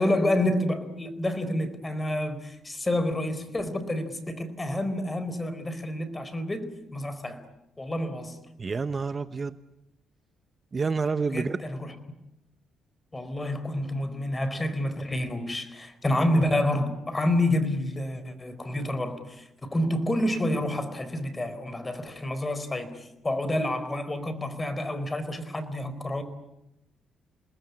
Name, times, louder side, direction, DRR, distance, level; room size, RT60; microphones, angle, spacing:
voice 1, 0.0-7.4 7.8-8.4 11.3-11.9 13.1-26.2, left 1 dB, 20° left, 4.2 m, -28 dB
voice 2, 8.6-9.6 10.7-11.6, right 4 dB, 35° right, 1.0 m, -28 dB
28.5 x 20.0 x 9.7 m
cardioid pair, 90°, 0 cm